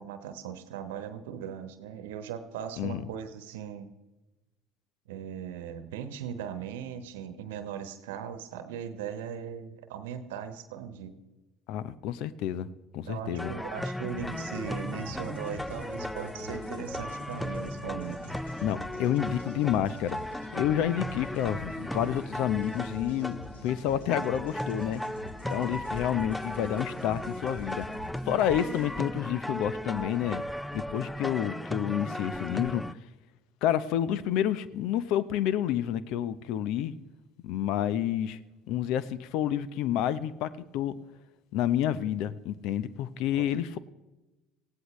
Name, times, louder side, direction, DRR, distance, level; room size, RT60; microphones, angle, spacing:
voice 1, 0.0-3.9 5.1-11.2 13.0-18.2 43.4-43.5, right 8 dB, 80° right, 10 dB, 1.1 m, -39 dB
voice 2, 11.7-12.7 12.9-13.5 18.6-20.2 20.5-25.0 25.5-27.9 28.3-30.4 30.7-32.8 33.6-36.9 37.4-38.4 38.7-41.0 41.5-43.8, left 10 dB, 65° left, 17 dB, 0.7 m, -29 dB
sound 1, 13.4-32.9, left 1 dB, 10° left, 0.4 m, -36 dB
sound 2, 14.1-28.9, left 1 dB, 85° left, 2.9 m, -46 dB
18.5 x 16.0 x 3.2 m, 1.1 s
hypercardioid pair, 65°, 0 cm